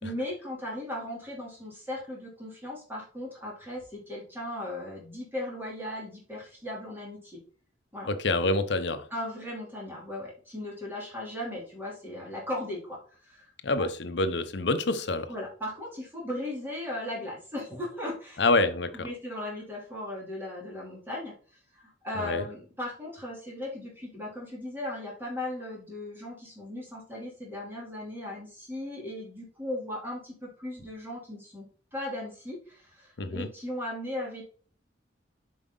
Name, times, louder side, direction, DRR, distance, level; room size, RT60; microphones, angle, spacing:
voice 1, 0.0-7.4 7.9-8.1 9.1-13.0 13.2-13.4 13.8-13.9 15.3-18.4 18.9-21.3 21.7-34.4, left 1 dB, 10° right, 3.1 m, -37 dB
voice 2, 8.1-9.1 13.6-15.3 18.4-19.1 22.1-22.5 33.2-33.5, left 2 dB, 65° left, 0.7 m, -27 dB
7.4 x 5.1 x 3.9 m
head